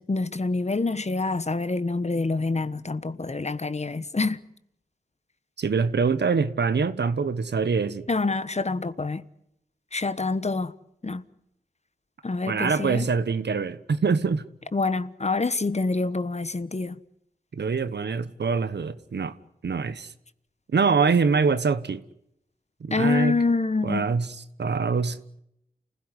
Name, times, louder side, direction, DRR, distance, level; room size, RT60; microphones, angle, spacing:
voice 1, 0.0-4.4 8.1-9.2 9.9-10.7 11.0-11.2 12.2-13.1 14.7-17.0 22.9-24.1, left 3 dB, 40° left, 1.2 m, -26 dB
voice 2, 5.6-8.1 12.5-14.4 17.5-19.4 19.6-20.1 20.7-22.0 22.8-23.4 23.8-25.4, right 5 dB, 85° right, 1.3 m, -24 dB
29.0 x 16.0 x 9.8 m
cardioid pair, 55°, 17 cm